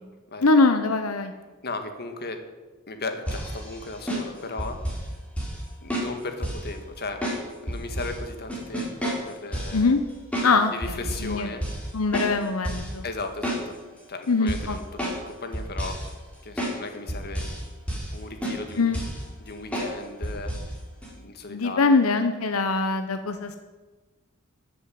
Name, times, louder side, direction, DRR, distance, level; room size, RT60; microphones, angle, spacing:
voice 1, 0.4-1.3 9.7-10.0 10.4-11.5 11.9-13.0 14.3-14.8 18.8-19.0 21.5-23.6, left 3 dB, 85° left, 8 dB, 0.9 m, -22 dB
voice 2, 1.6-2.4 2.9-4.8 5.8-7.2 7.6-9.9 10.7-11.6 13.0-13.8 14.1-16.0 16.4-17.5 18.1-18.9 19.4-20.5 21.1-22.0, left 3 dB, 50° left, 6 dB, 1.8 m, -36 dB
sound 1, 3.3-5.1 5.4-5.6 5.9-6.7 7.2-8.2 8.5-9.8 10.3-10.5 10.8-11.3 11.6-11.9 12.1-12.9 13.2-14.0 14.5-15.3 15.5-16.1 16.6-16.8 17.1-17.6 17.9-18.2 18.4-19.2 19.7-19.9 20.2-20.7 21.0-21.1, equal, 5° left, 4.3 m, -30 dB
14.0 x 8.1 x 9.3 m, 1.3 s
head